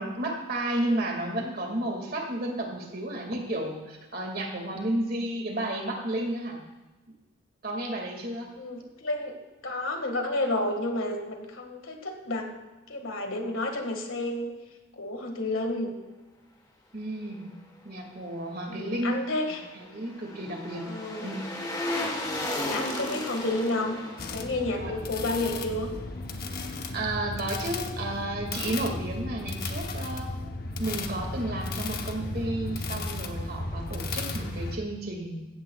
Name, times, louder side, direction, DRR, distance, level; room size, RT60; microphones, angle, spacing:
voice 1, 0.0-6.6 7.6-8.5 16.9-17.5 17.8-19.1 19.7-20.8 21.2-21.4 24.8-24.9 26.6-30.3 30.8-35.5, right 1 dB, 45° right, 2 dB, 2.1 m, -32 dB
voice 2, 8.6-9.3 9.6-12.5 12.9-14.5 15.0-16.0 18.7-19.6 20.9-21.4 22.6-24.0 24.3-25.9, left 2 dB, 75° left, 4 dB, 1.8 m, -30 dB
sound 1, 19.1-26.3 26.6-26.7, left 1 dB, 20° left, 1.3 m, -35 dB
sound 2, 24.2-34.8, left 2 dB, 45° left, 0.9 m, -34 dB
15.5 x 14.5 x 2.3 m, 1.1 s
head